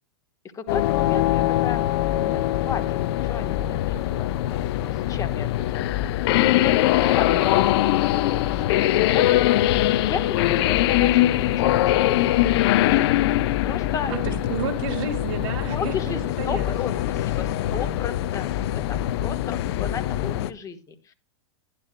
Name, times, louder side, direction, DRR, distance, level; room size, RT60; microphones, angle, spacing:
voice 1, 0.5-1.8 2.2-6.0 6.6-8.8 9.1-12.3 12.8-13.0 13.6-14.1 15.7-21.1, left 6 dB, 20° left, 8 dB, 1.2 m, -34 dB
sound 1, 0.7-20.5, left 14 dB, 55° left, 0.5 m, -22 dB
voice 2, 14.1-16.7 17.0-17.3 17.6-17.9, right 5 dB, 50° right, 5 dB, 2.5 m, -32 dB
12.0 x 11.0 x 2.2 m, 0.32 s
hypercardioid pair, 125°, 16 cm